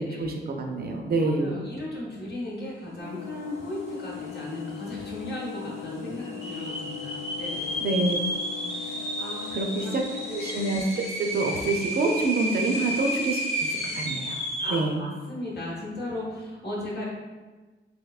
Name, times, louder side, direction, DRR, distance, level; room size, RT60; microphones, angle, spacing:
voice 1, 0.0-1.6 7.8-8.2 9.5-10.0 10.3-10.8 11.2-13.7 13.9-14.4 14.7-15.0, right 2 dB, 50° right, 2 dB, 0.4 m, -27 dB
voice 2, 1.2-7.8 8.7-9.5 9.8-9.9 12.6-12.7 14.6-17.0, left 1 dB, 55° left, -4 dB, 0.9 m, -36 dB
sound 1, 3.0-10.8, left 10 dB, 75° left, 0.5 m, -39 dB
sound 2, 4.0-4.1 4.3-4.9 5.4-5.5 6.2-14.9, equal, 35° left, 0.7 m, -32 dB
3.5 x 2.6 x 2.3 m, 1.3 s
wide cardioid pair, 140°, 20 cm